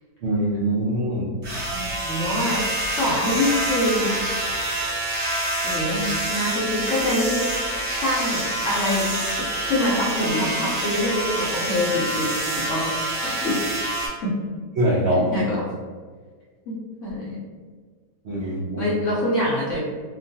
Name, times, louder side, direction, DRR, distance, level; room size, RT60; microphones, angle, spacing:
voice 1, 0.2-1.3 14.8-15.2 18.2-18.9, right 1 dB, 90° right, -6 dB, 0.5 m, -23 dB
sound 1, 1.4-14.1, right 1 dB, 45° right, 1.2 m, -26 dB
voice 2, 1.7-2.6 3.0-4.2 5.6-7.5 7.9-9.2 9.6-13.6 14.2-14.3 15.1-15.6 16.7-17.4 18.8-19.8, left 1 dB, 65° left, -6 dB, 0.8 m, -25 dB
3.0 x 2.2 x 2.6 m, 1.5 s
omnidirectional pair, 1.8 m